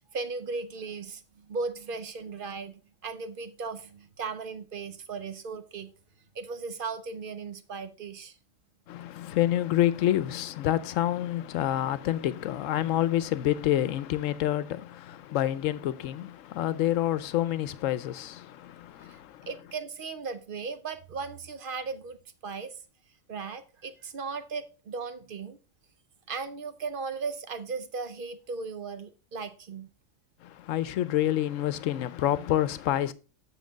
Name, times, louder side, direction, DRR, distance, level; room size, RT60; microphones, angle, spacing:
voice 1, 0.1-5.9 6.3-8.3 19.1-19.2 19.5-22.2 22.4-22.8 23.3-25.6 26.3-29.9, right 4 dB, 55° right, 0.7 m, -37 dB
voice 2, 8.9-19.5 30.4-33.1, left 12 dB, 80° left, 1.0 m, -28 dB
7.4 x 6.3 x 3.8 m
omnidirectional pair, 1.3 m